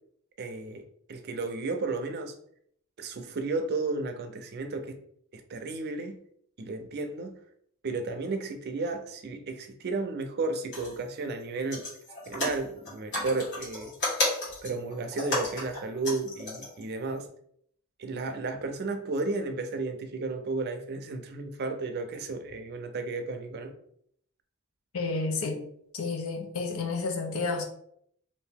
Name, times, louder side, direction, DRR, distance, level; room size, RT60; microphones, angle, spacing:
voice 1, 0.4-0.8 1.1-2.3 3.0-5.0 5.3-6.2 6.6-7.3 7.8-11.8 12.3-13.9 14.6-17.3 18.0-23.7, right 3 dB, 50° right, 0.5 m, -33 dB
sound 1, 10.7-11.0 11.3-11.4 11.7-16.8 17.2-17.3, left 2 dB, 55° left, 1.5 m, -33 dB
voice 2, 24.9-25.6 25.9-27.6, left 3 dB, 85° left, 0.6 m, -30 dB
2.8 x 2.6 x 3.5 m
head